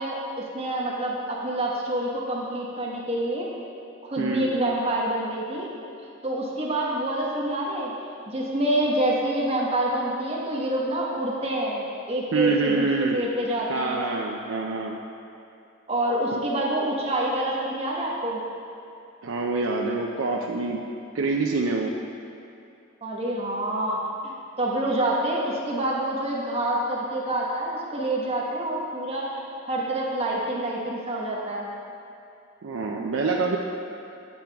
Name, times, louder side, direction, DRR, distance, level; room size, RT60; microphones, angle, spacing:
voice 1, 0.0-3.5 4.0-5.7 6.2-14.0 15.9-18.4 23.0-29.3 29.7-31.7, right 1 dB, 30° right, -4 dB, 1.1 m, -27 dB
voice 2, 4.2-4.5 12.3-13.2 13.7-15.0 16.3-16.4 19.2-20.8 21.1-21.9 32.6-33.6, right 3 dB, 85° right, 0 dB, 0.5 m, -26 dB
8.6 x 7.9 x 3.4 m, 2.6 s
head